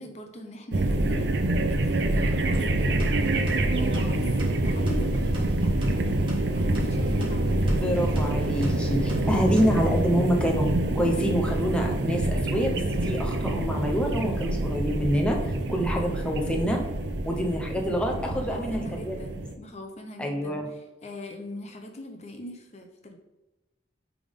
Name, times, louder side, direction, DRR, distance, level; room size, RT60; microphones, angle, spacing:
voice 1, 0.0-6.1 6.5-7.8 18.3-23.2, left 2 dB, 40° left, 4 dB, 0.7 m, -41 dB
sound 1, 0.7-19.5, right 1 dB, 75° right, 0.6 m, -26 dB
sound 2, 2.5-10.0, left 1 dB, 30° right, 1.8 m, -33 dB
voice 2, 7.8-10.7 10.9-15.4 15.7-16.8 17.2-19.1 20.2-20.7, equal, 5° left, 0 dB, 0.7 m, -27 dB
8.9 x 3.5 x 3.6 m, 1.1 s
head